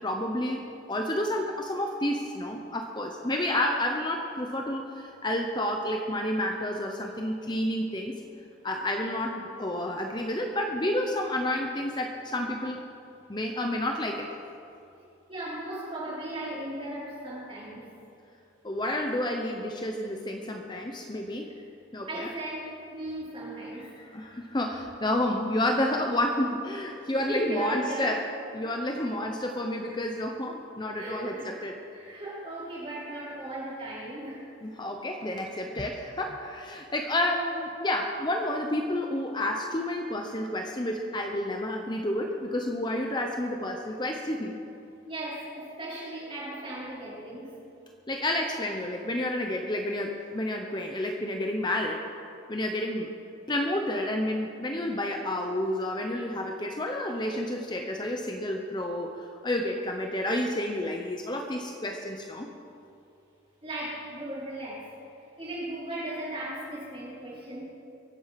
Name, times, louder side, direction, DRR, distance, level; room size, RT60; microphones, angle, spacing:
voice 1, 0.0-8.2 8.6-12.8 13.3-14.3 18.6-21.5 21.9-22.3 23.8-28.2 28.5-31.8 34.6-44.6 48.1-52.0 52.5-53.1 53.5-59.1 59.4-62.5, left 1 dB, 25° left, 3 dB, 0.8 m, -30 dB
voice 2, 15.3-17.9 21.4-21.6 22.1-24.1 27.1-28.2 30.9-31.5 31.9-34.5 45.1-47.5 63.6-64.9 65.4-67.6, right 1 dB, 30° right, -7 dB, 4.5 m, -36 dB
23.5 x 8.0 x 5.9 m, 2.6 s
head